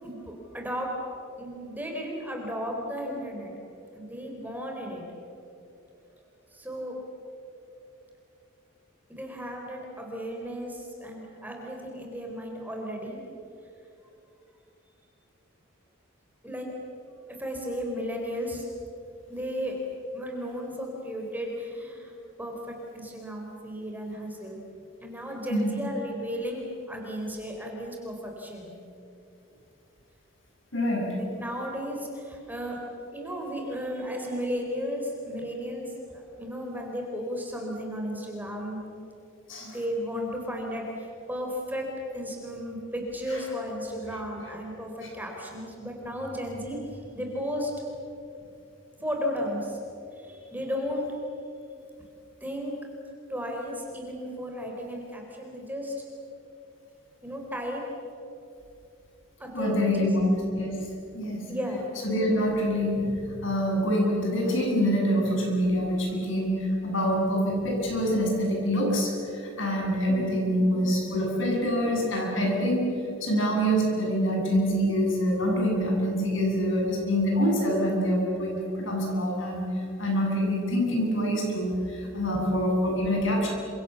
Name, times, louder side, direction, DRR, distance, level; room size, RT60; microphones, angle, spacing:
voice 1, 0.0-0.9 1.4-3.5 3.9-5.0 6.5-7.0 9.1-13.2 16.4-16.7 17.4-18.6 19.3-19.8 20.1-22.1 22.4-24.6 25.0-28.7 31.2-38.8 39.6-46.8 47.1-47.7 49.0-49.8 50.1-51.1 52.4-52.7 53.3-55.9 57.2-57.8 59.4-60.1 61.3-61.9 70.0-70.5, equal, 10° right, 0 dB, 4.2 m, -34 dB
voice 2, 30.7-31.2 39.5-39.8 43.3-43.4 59.5-60.3 60.5-60.7 61.1-61.5 62.0-72.9 73.2-83.5, equal, 65° left, 0 dB, 7.9 m, -26 dB
28.5 x 27.0 x 7.1 m, 2.7 s
head